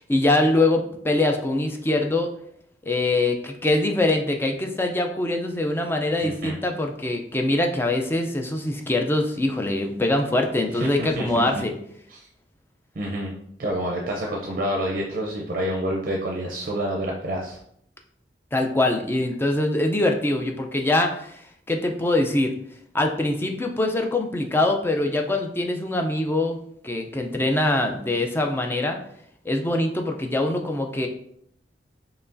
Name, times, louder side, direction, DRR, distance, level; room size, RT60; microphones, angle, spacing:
voice 1, 0.0-2.3 2.9-11.7 18.5-21.4 21.7-22.5 22.9-26.6 26.8-29.0 29.5-31.1, left 2 dB, 15° left, 3 dB, 0.4 m, -23 dB
voice 2, 6.2-6.6 10.8-11.3 12.1-12.2 13.0-13.3 13.6-17.6, right 1 dB, 50° right, -1 dB, 0.5 m, -28 dB
4.6 x 3.1 x 2.6 m, 0.69 s
head